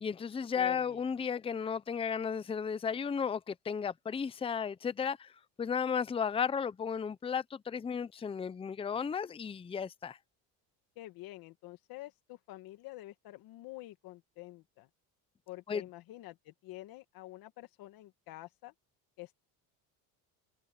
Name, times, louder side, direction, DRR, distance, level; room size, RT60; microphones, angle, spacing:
voice 1, 0.0-5.3 5.6-10.2 15.7-15.8, left 6 dB, 15° left, 0.6 m, -34 dB
voice 2, 0.5-1.0 10.9-14.9 15.5-18.7 19.2-19.3, left 17 dB, 70° left, 1.5 m, -48 dB
cardioid pair, 125°, 37 cm